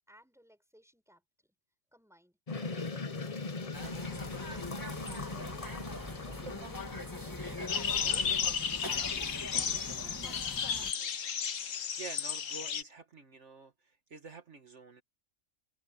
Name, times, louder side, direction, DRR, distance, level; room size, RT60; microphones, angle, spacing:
voice 1, 0.1-1.5 1.9-2.4 2.7-6.7 7.0-7.6 7.9-8.3 8.8-11.2, equal, ahead, 7.1 m, -61 dB
sound 1, 2.5-8.4, left 3 dB, 30° left, 0.9 m, -41 dB
sound 2, 3.7-10.9, left 1 dB, 15° left, 2.8 m, -42 dB
sound 3, 7.7-12.8, left 7 dB, 75° left, 1.5 m, -33 dB
voice 2, 11.3-15.0, right 4 dB, 65° right, 2.0 m, -48 dB
open air
omnidirectional pair, 1.3 m